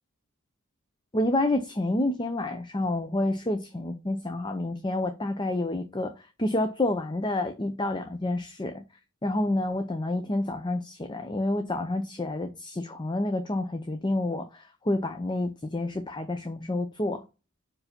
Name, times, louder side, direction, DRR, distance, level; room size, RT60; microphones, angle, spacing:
voice 1, 1.1-8.8 9.2-17.2, left 1 dB, 20° left, 0.6 m, -29 dB
5.5 x 4.9 x 5.1 m
head